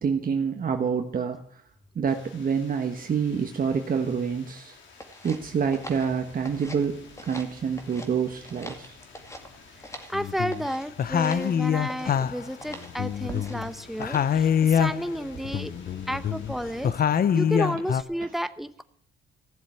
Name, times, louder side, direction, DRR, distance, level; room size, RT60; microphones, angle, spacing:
voice 1, 0.0-1.4 1.9-4.8 5.2-7.0 7.3-9.0 13.3-13.4 14.1-14.2, right 6 dB, 45° right, 4 dB, 1.3 m, -27 dB
sound 1, 2.1-16.9, left 4 dB, 75° left, 3.6 m, -50 dB
sound 2, 5.0-6.9 7.1-8.1 8.4-10.2 10.5-10.9 11.2-11.5 11.9-12.2 12.6-12.9 13.3-13.7 14.0-14.4, left 1 dB, 15° left, 2.2 m, -43 dB
sound 3, 10.1-10.7 11.0-13.7 14.0-15.2 15.4-18.0, left 8 dB, 50° left, 0.7 m, -25 dB
voice 2, 10.1-15.7 16.1-18.8, equal, ahead, 12 dB, 0.9 m, -32 dB
15.5 x 7.4 x 8.6 m, 0.63 s
cardioid pair, 90°, 20 cm